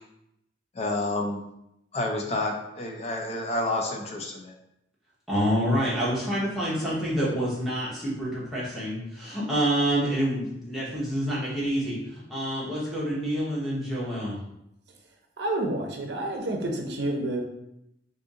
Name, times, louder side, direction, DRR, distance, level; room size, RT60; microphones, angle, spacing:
voice 1, 0.7-1.5 1.9-4.5, left 2 dB, 35° left, 2 dB, 0.4 m, -29 dB
voice 2, 5.3-14.4, equal, ahead, -9 dB, 0.9 m, -27 dB
voice 3, 15.4-17.4, right 1 dB, 60° right, 1 dB, 0.6 m, -29 dB
2.7 x 2.6 x 3.7 m, 0.82 s
head